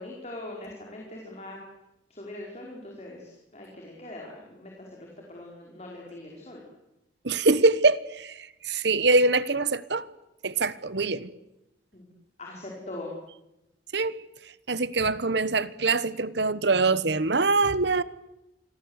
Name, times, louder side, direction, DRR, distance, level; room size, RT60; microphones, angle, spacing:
voice 1, 0.0-1.6 2.1-6.6 11.9-12.1 12.4-13.1, left 2 dB, 35° left, 5.0 m, -41 dB
voice 2, 7.2-10.1 10.4-11.3 13.9-14.2 14.7-18.0, right 3 dB, 65° right, 1.1 m, -24 dB
27.0 x 22.0 x 8.2 m
head